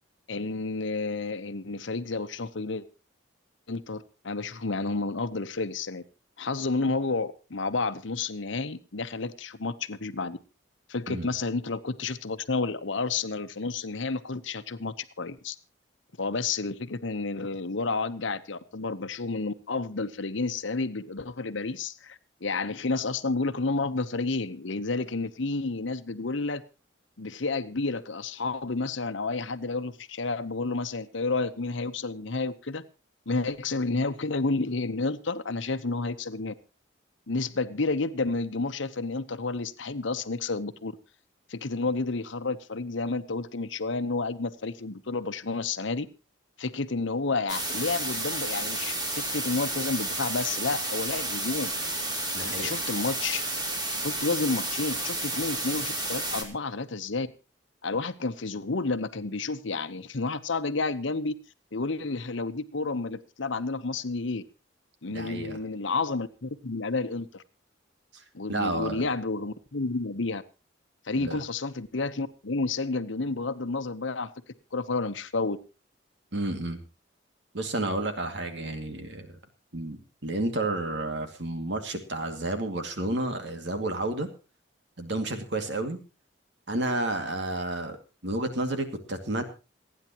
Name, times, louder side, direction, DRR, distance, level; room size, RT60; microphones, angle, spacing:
voice 1, 0.3-2.8 3.7-6.0 6.4-10.4 10.9-15.6 16.2-26.6 27.2-32.8 33.3-36.5 37.3-40.9 41.5-46.1 46.6-51.7 52.4-53.4 54.0-57.3 57.8-61.4 61.7-64.4 65.0-67.4 68.3-70.4 71.0-74.3 74.7-75.6, left 3 dB, 75° left, 11 dB, 1.0 m, -30 dB
sound 1, 47.5-56.4, right 2 dB, 20° right, 2.6 m, -31 dB
voice 2, 52.3-52.8 65.1-65.6 68.1-68.2 68.5-69.1 71.2-71.4 76.3-76.8 77.5-79.4 79.7-84.3 85.0-86.0 86.7-88.0 88.2-89.4, right 2 dB, 65° right, 6 dB, 2.3 m, -31 dB
28.0 x 9.7 x 3.0 m, 0.32 s
head